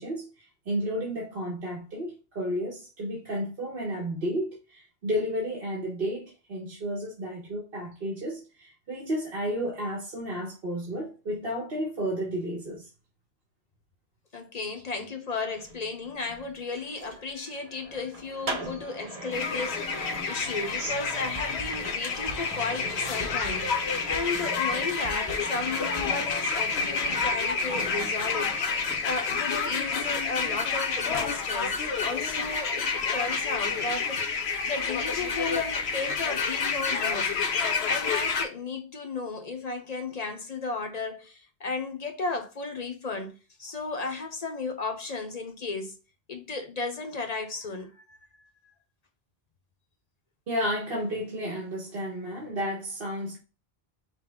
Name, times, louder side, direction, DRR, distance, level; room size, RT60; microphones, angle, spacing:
voice 1, 0.0-12.9 18.7-18.8 20.7-20.9 50.5-53.4, equal, 65° right, 1.3 m, -32 dB
voice 2, 14.3-23.7 24.1-34.2 34.6-37.3 37.8-43.3 43.6-45.9 46.3-48.2, left 3 dB, 45° left, 0.7 m, -34 dB
sound 1, 15.4-29.6 29.9-31.3 31.6-32.0, right 2 dB, 40° right, 0.8 m, -42 dB
sound 2, 19.3-38.5, left 5 dB, 85° left, 1.0 m, -29 dB
sound 3, 20.9-26.8, right 3 dB, 10° right, 1.1 m, -44 dB
5.7 x 2.1 x 3.4 m
omnidirectional pair, 1.0 m